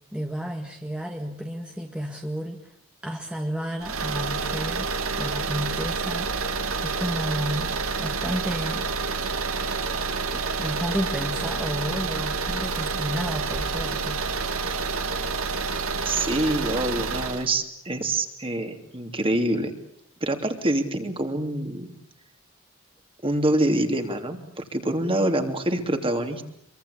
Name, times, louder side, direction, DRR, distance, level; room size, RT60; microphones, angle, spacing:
voice 1, 0.1-2.7 3.0-4.9 5.2-6.3 6.8-7.7 8.0-8.8 10.3-14.2, equal, 5° right, 2 dB, 1.9 m, -31 dB
sound 1, 3.8-17.5, right 4 dB, 85° right, 2.6 m, -28 dB
voice 2, 16.0-19.7 20.2-21.9 23.2-26.5, right 1 dB, 25° right, 6 dB, 3.0 m, -26 dB
26.0 x 23.5 x 8.5 m, 0.69 s
head